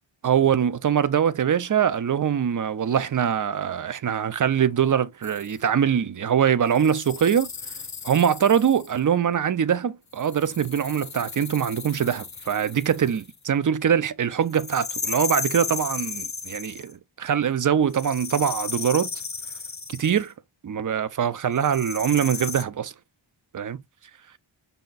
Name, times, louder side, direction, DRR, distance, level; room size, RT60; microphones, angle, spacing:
voice 1, 0.2-7.5 8.0-19.1 19.9-20.3 20.6-22.9 23.5-23.8, right 8 dB, 45° right, 0.5 m, -23 dB
sound 1, 5.2-5.6 6.7-9.0 10.2-13.4 14.5-16.9 17.9-20.3 21.6-22.6, left 5 dB, 35° left, 0.8 m, -35 dB
5.5 x 2.3 x 3.9 m
wide cardioid pair, 50°, 47 cm